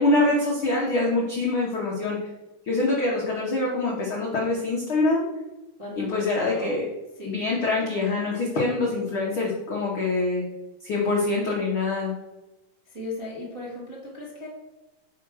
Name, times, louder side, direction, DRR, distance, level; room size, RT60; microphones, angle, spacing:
voice 1, 0.0-2.2 2.7-5.3 6.0-6.8 7.2-10.4 10.8-12.1, left 2 dB, 80° left, -4 dB, 1.1 m, -24 dB
voice 2, 5.8-6.7 7.2-7.4 12.9-14.5, left 2 dB, 30° right, -6 dB, 0.5 m, -36 dB
5.1 x 4.7 x 6.1 m, 1.0 s
omnidirectional pair, 3.9 m